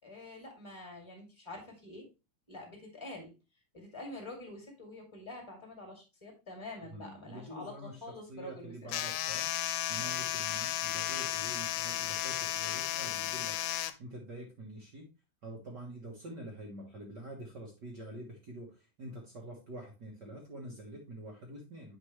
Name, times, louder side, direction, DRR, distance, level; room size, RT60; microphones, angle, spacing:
voice 1, 0.0-2.1 2.5-3.3 3.7-7.7 8.0-8.7, left 2 dB, 10° left, 2 dB, 2.0 m, -46 dB
voice 2, 6.9-9.5 9.9-13.7 14.0-15.1 15.4-22.0, right 1 dB, 50° right, -1 dB, 1.4 m, -46 dB
sound 1, 8.9-13.9, left 13 dB, 85° left, 2.1 m, -34 dB
8.3 x 5.4 x 3.1 m, 0.27 s
omnidirectional pair, 3.6 m